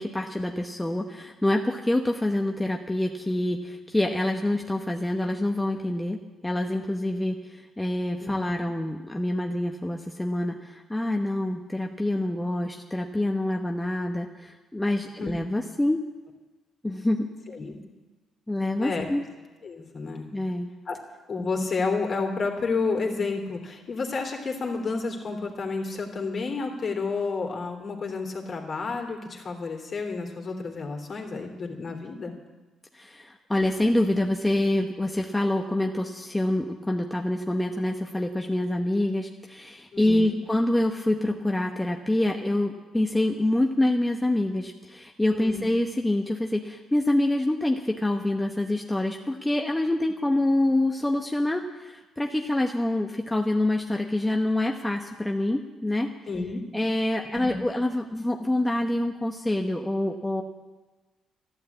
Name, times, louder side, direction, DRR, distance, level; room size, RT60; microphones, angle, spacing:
voice 1, 0.0-16.0 16.8-17.3 18.5-19.2 20.3-20.7 32.9-56.1 56.7-60.4, left 1 dB, 10° left, 2 dB, 1.1 m, -26 dB
voice 2, 19.6-20.3 20.9-21.0 21.3-32.3 39.9-40.4 45.3-45.6 56.3-56.6 57.3-57.6, left 4 dB, 45° left, 3 dB, 3.0 m, -30 dB
13.0 x 12.0 x 8.4 m, 1.3 s
cardioid pair, 90°, 0 cm